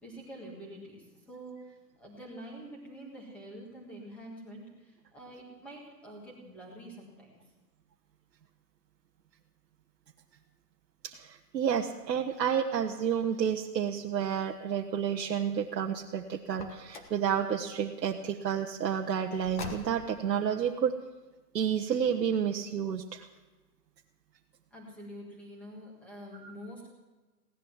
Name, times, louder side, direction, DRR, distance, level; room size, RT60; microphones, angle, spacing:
voice 1, 0.0-7.4 24.7-26.9, right 1 dB, 5° left, -2 dB, 1.6 m, -46 dB
voice 2, 11.0-20.9 21.5-23.3 26.4-26.5, right 8 dB, 85° right, 2 dB, 1.3 m, -30 dB
Car, 16.5-17.2 19.4-20.2, left 3 dB, 30° left, 1.3 m, -43 dB
17.0 x 11.5 x 7.2 m, 1.2 s
hypercardioid pair, 175°, 49 cm